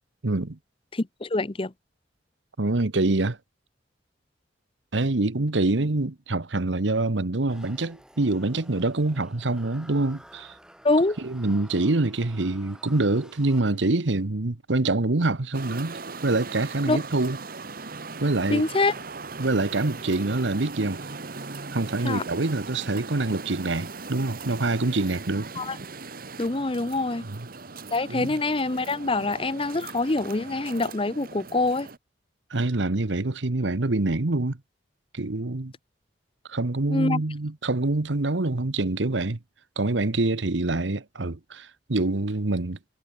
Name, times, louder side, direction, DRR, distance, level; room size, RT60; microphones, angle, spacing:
voice 1, 0.2-0.6 2.6-3.4 4.9-10.5 11.2-17.4 18.2-18.7 19.4-21.1 21.7-25.5 27.2-27.5 28.1-28.4 32.5-34.6 35.1-35.7 36.5-39.4 39.8-42.8, right 2 dB, 85° right, 1.2 m, -25 dB
voice 2, 0.9-1.7 10.8-11.2 16.9-17.0 18.5-18.9 22.0-22.2 25.6-25.8 26.4-27.2 27.9-31.9 36.9-37.2, left 2 dB, 30° left, 0.8 m, -25 dB
sound 1, 7.5-14.1, right 1 dB, 5° right, 2.7 m, -51 dB
sound 2, 15.5-32.0, right 4 dB, 50° right, 1.5 m, -39 dB
head